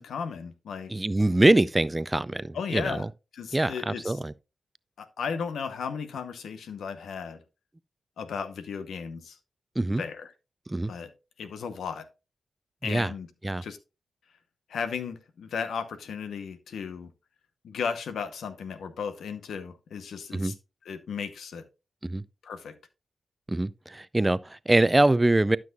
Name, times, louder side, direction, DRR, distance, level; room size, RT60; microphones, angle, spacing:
voice 1, 0.0-0.9 2.5-3.0 3.3-4.1 5.0-7.4 8.2-9.4 10.0-10.3 10.9-11.1 11.4-12.1 12.8-13.3 13.6-13.8 14.7-17.1 17.6-20.5 20.9-21.6 22.4-22.8, left 6 dB, 85° left, 0.8 m, -35 dB
voice 2, 0.9-3.1 3.5-4.3 9.8-10.0 10.7-10.9 12.8-13.1 13.4-13.6 20.3-20.5 22.0-22.2 23.5-25.6, right 2 dB, 20° right, 0.4 m, -24 dB
12.0 x 6.0 x 2.3 m
cardioid pair, 50°, 0 cm